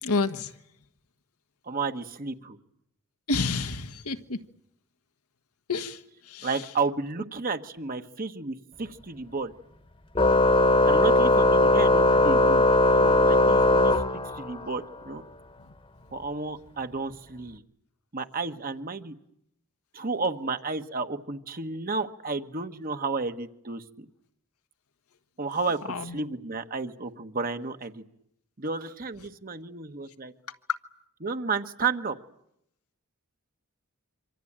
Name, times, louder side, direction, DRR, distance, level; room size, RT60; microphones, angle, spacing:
voice 1, 0.0-0.5 3.3-4.4 5.7-6.6 25.9-26.2, left 3 dB, 85° left, 7 dB, 1.5 m, -29 dB
voice 2, 1.7-2.6 6.4-9.5 10.8-12.6 13.0-13.9 14.3-15.2 16.1-17.6 18.1-19.1 19.9-24.0 25.4-28.0 28.6-30.3 31.2-32.1, right 4 dB, 40° right, 8 dB, 1.3 m, -32 dB
Organ, 10.2-14.7, left 2 dB, 25° left, 1.3 m, -20 dB
26.0 x 25.5 x 8.8 m, 0.76 s
head